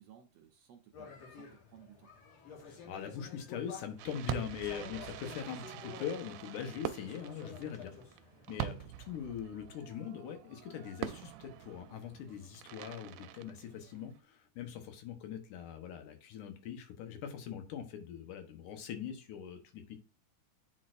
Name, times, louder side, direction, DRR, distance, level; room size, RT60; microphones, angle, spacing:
voice 1, 0.0-2.1, right 10 dB, 70° right, 1.7 m, -58 dB
sound 1, 0.9-8.7, left 6 dB, 60° left, 2.6 m, -51 dB
voice 2, 2.6-7.9 8.5-20.0, left 8 dB, 85° left, 2.6 m, -42 dB
Fireworks, 4.0-14.2, right 13 dB, 85° right, 2.1 m, -44 dB
10.5 x 4.2 x 2.5 m
omnidirectional pair, 3.6 m